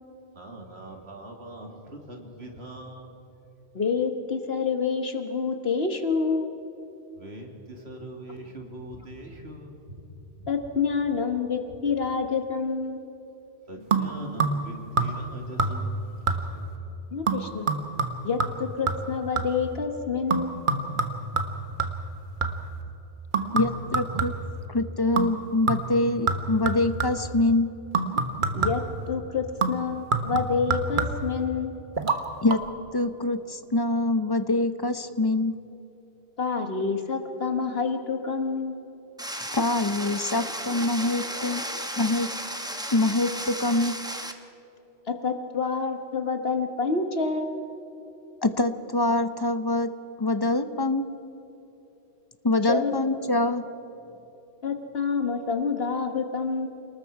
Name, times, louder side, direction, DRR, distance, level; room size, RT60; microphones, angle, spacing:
voice 1, 0.4-3.1 7.2-9.8 13.7-16.0, right 1 dB, 65° right, 1 dB, 2.7 m, -41 dB
voice 2, 3.7-6.5 10.5-13.0 17.1-17.7 18.2-20.6 28.5-31.8 36.4-38.8 45.1-47.6 52.6-53.0 54.6-56.7, left 5 dB, 60° left, 5 dB, 1.5 m, -28 dB
sound 1, 13.9-14.7 15.0-15.3 15.6-16.0 16.3-16.7 17.3-19.7 20.3-22.8 23.3-24.6 25.2-25.4 25.7-27.3 27.9-29.0 29.6-31.4 32.0-32.2 32.5-32.6, right 4 dB, 45° right, 1.4 m, -27 dB
voice 3, 23.5-24.3 24.7-27.7 32.4-32.6 32.9-35.6 39.5-41.6 42.0-42.3 42.9-44.0 48.4-49.9 50.2-51.1 52.4-53.6, left 2 dB, 25° left, 10 dB, 0.7 m, -25 dB
sound 2, 39.2-44.3, equal, 5° right, 1.0 m, -34 dB
29.0 x 19.5 x 4.8 m, 3.0 s
omnidirectional pair, 1.2 m